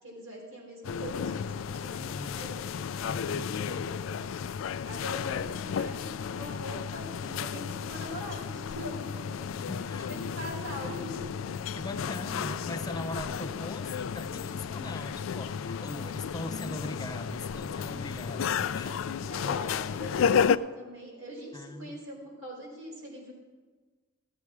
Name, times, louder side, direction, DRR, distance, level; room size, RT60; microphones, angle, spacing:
voice 1, 0.0-4.2 4.8-9.5 9.9-11.3 19.2-23.3, equal, 80° right, -2 dB, 4.5 m, -42 dB
sound 1, 0.8-20.6, left 7 dB, 75° left, 0.3 m, -33 dB
voice 2, 1.9-2.6 3.2-4.0 9.6-10.1 11.7-19.1 21.5-22.0, left 1 dB, 20° left, 7 dB, 0.6 m, -40 dB
14.5 x 8.4 x 4.8 m, 1.4 s
head